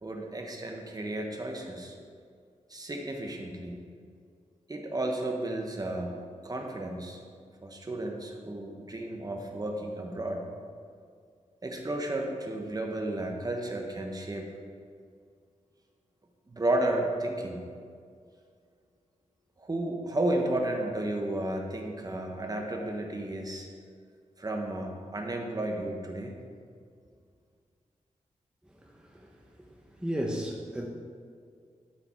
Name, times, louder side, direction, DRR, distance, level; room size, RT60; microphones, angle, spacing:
voice 1, 0.0-2.0 2.7-3.8 4.7-6.2 6.4-7.2 7.6-10.4 11.6-14.5 16.5-17.6 19.6-23.7 24.4-26.4, right 1 dB, 30° right, 2 dB, 1.1 m, -33 dB
voice 2, 28.9-29.3 30.0-30.9, equal, 5° right, -1 dB, 0.7 m, -33 dB
12.0 x 5.0 x 4.5 m, 2.2 s
wide cardioid pair, 105°, 13 cm